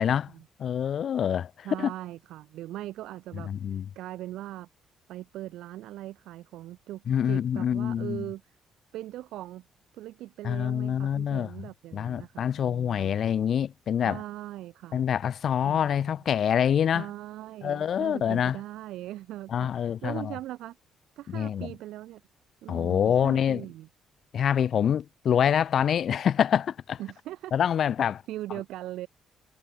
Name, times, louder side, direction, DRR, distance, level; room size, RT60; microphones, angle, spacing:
voice 1, 0.0-0.3 0.6-1.9 3.3-3.9 7.1-8.2 10.4-11.5 11.9-14.2 14.9-17.1 17.6-18.6 19.5-20.3 21.3-21.7 22.7-23.6 24.3-27.0 27.5-28.2, left 9 dB, 60° left, 2.9 m, -26 dB
voice 2, 1.6-4.7 5.1-8.4 8.9-9.7 9.9-13.2 14.0-15.1 15.6-16.1 16.9-20.8 21.2-22.2 22.6-23.9 27.0-27.5 28.0-29.1, right 14 dB, 85° right, 4.4 m, -40 dB
cardioid pair, 90°, 0 cm